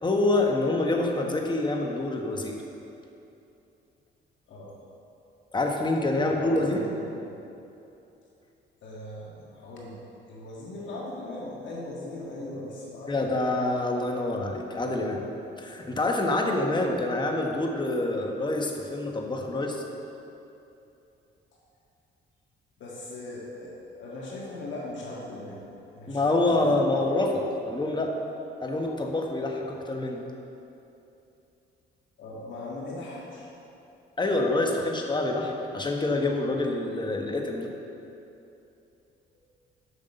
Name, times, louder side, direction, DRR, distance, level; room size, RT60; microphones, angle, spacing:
voice 1, 0.0-2.6 5.5-6.8 13.1-15.2 15.6-19.8 26.1-28.1 28.6-30.2 34.2-37.7, left 2 dB, 20° left, 1 dB, 1.2 m, -26 dB
voice 2, 6.1-7.2 8.8-10.0 10.3-13.5 22.8-25.6 25.9-26.8 32.2-33.5, left 2 dB, 70° left, -4 dB, 1.7 m, -39 dB
8.1 x 5.9 x 6.8 m, 2.8 s
cardioid pair, 90°, 20 cm